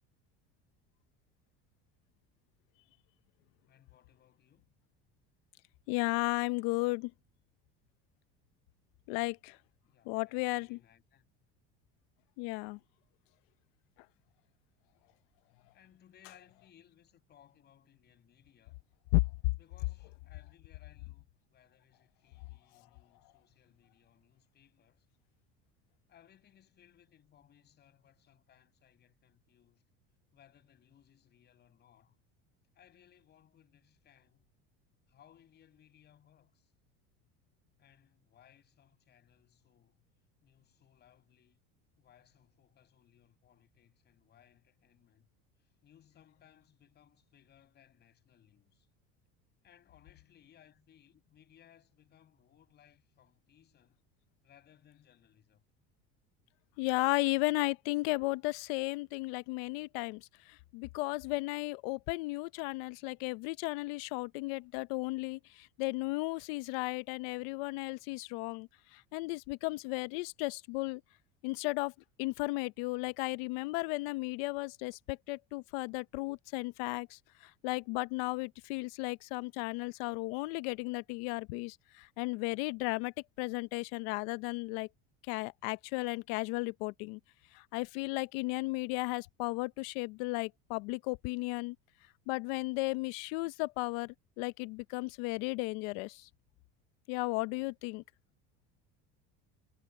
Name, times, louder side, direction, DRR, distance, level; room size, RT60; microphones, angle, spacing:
voice 1, 3.7-4.7 9.8-11.3 15.7-18.8 19.6-25.1 26.1-29.8 30.3-32.2 32.7-34.5 35.1-36.7 37.8-40.0 40.4-41.6 42.0-45.3 45.6-48.9 49.6-54.0 54.4-55.6, left 10 dB, 35° left, 7.9 m, -64 dB
voice 2, 5.9-7.1 9.1-9.6 10.1-10.8 12.4-12.8 19.1-19.2 56.8-60.2 60.7-68.7 69.1-71.0 71.4-71.9 72.2-77.2 77.6-84.9 85.3-87.2 87.5-91.7 92.3-96.2 97.1-98.0, left 23 dB, 75° left, 0.9 m, -34 dB
cardioid pair, 160°, 30 cm